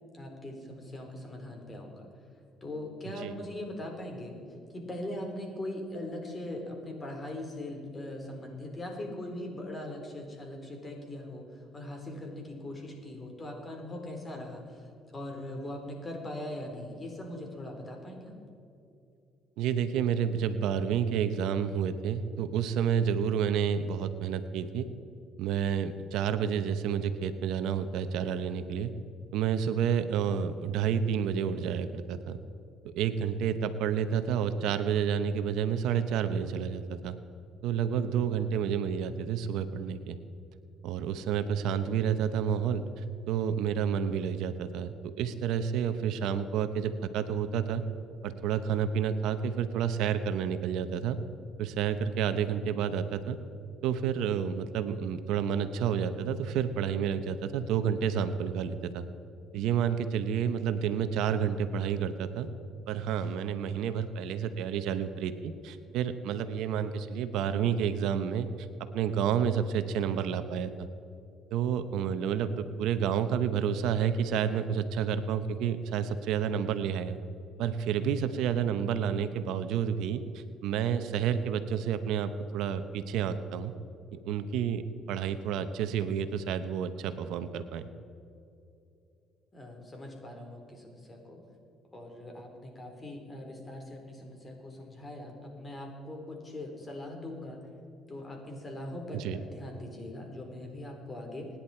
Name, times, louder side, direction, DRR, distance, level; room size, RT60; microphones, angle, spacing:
voice 1, 0.1-2.0 2.6-4.3 4.7-11.5 11.7-14.9 15.1-18.4 89.5-91.4 91.9-97.6 98.1-101.5, left 1 dB, 25° left, 2 dB, 4.2 m, -41 dB
voice 2, 19.6-24.9 25.4-28.9 29.3-32.4 32.9-37.2 37.6-40.2 40.8-47.8 48.2-51.2 51.6-53.4 53.8-59.1 59.5-62.5 62.9-68.7 68.9-70.9 71.5-77.2 77.6-83.7 84.1-87.9 99.1-99.4, right 8 dB, 80° right, 10 dB, 0.9 m, -30 dB
25.0 x 10.5 x 4.5 m, 2.7 s
cardioid pair, 90°, 0 cm